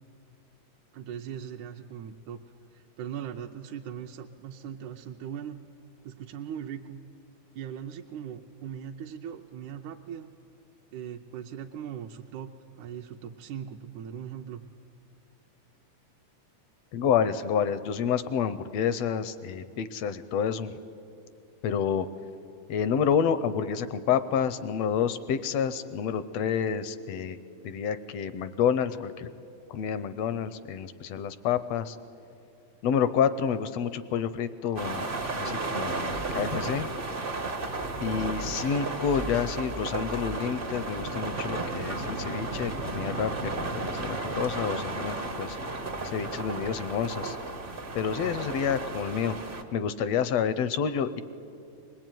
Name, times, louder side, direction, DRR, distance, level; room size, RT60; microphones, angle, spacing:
voice 1, 0.9-2.4 2.7-5.6 6.1-7.0 7.6-10.3 10.9-12.5 12.8-14.6, right 9 dB, 80° right, 2 dB, 2.0 m, -39 dB
voice 2, 16.9-20.7 21.6-22.1 22.7-27.4 27.6-29.3 29.7-32.0 32.8-35.0 35.4-36.9 38.0-45.6 46.0-47.4 47.9-49.4 49.7-51.2, left 7 dB, 75° left, 13 dB, 1.5 m, -29 dB
pluie-grenier, 34.7-49.6, right 3 dB, 60° right, 0.5 m, -33 dB
23.0 x 20.0 x 9.1 m, 2.6 s
omnidirectional pair, 3.5 m